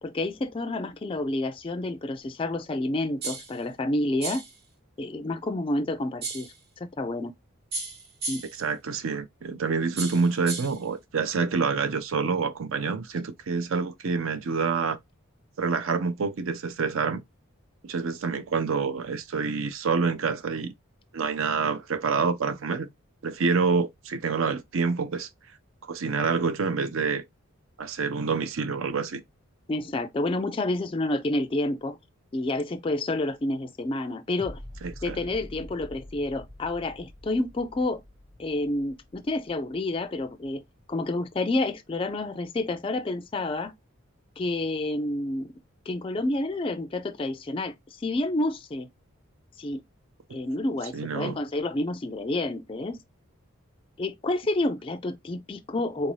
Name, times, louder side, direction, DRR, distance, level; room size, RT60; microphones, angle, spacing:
voice 1, 0.0-4.4 5.0-6.5 6.8-7.3 8.3-8.4 29.7-32.0 32.3-34.6 35.0-38.0 38.4-40.6 40.9-43.7 44.4-45.5 45.9-47.7 48.0-48.9 49.6-49.8 50.3-53.0 54.0-56.1, left 2 dB, 25° left, 0.3 m, -29 dB
sound 1, 3.2-3.6 4.2-4.6 6.2-6.6 7.7-8.6 10.0-10.8, right 3 dB, 50° right, 1.0 m, -34 dB
voice 2, 8.6-15.0 15.6-17.2 17.8-20.7 21.1-22.9 23.2-25.3 25.9-27.2 27.8-29.2 34.8-35.2 50.9-51.4, right 5 dB, 70° right, 0.5 m, -27 dB
sound 2, 34.4-41.4 41.9-42.0, left 1 dB, 20° right, 0.9 m, -46 dB
3.8 x 2.6 x 3.0 m
head